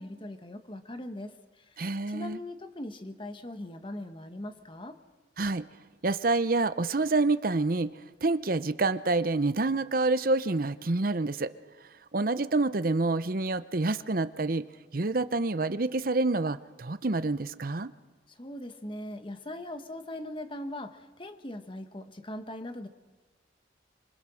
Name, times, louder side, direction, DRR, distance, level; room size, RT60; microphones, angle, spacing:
voice 1, 0.0-1.6 2.1-5.0 18.4-22.9, left 1 dB, 30° left, 8 dB, 1.3 m, -40 dB
voice 2, 1.8-2.4 5.4-5.6 6.0-7.9 8.2-11.5 12.1-14.6 14.9-17.9, right 3 dB, 50° right, 13 dB, 0.8 m, -27 dB
26.0 x 23.5 x 6.4 m, 1.3 s
head